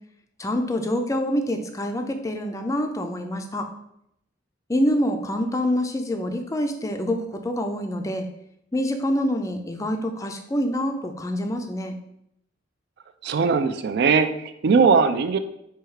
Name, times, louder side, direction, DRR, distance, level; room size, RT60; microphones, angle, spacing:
voice 1, 0.4-3.7 4.7-8.3 8.7-11.9, equal, 15° left, 5 dB, 0.4 m, -26 dB
voice 2, 13.2-15.4, right 5 dB, 60° right, 10 dB, 0.3 m, -20 dB
4.4 x 2.3 x 4.7 m, 0.78 s
head